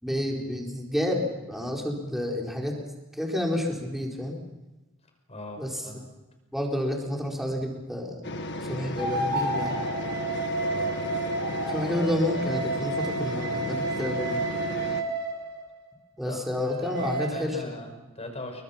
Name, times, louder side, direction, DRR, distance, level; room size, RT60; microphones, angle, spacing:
voice 1, 0.0-2.7 3.2-4.4 5.6-5.8 6.5-8.2 8.7-9.8 11.5-14.4 16.2-17.6, left 1 dB, ahead, -1 dB, 4.4 m, -30 dB
voice 2, 5.3-6.1 10.6-11.0 16.2-16.4 16.9-18.6, left 1 dB, 30° left, 5 dB, 5.3 m, -39 dB
sound 1, 8.2-15.0, left 1 dB, 55° left, 1.6 m, -34 dB
sound 2, 9.0-15.7 16.6-17.3, right 2 dB, 60° right, 4.8 m, -31 dB
29.0 x 23.5 x 5.9 m, 1.1 s
head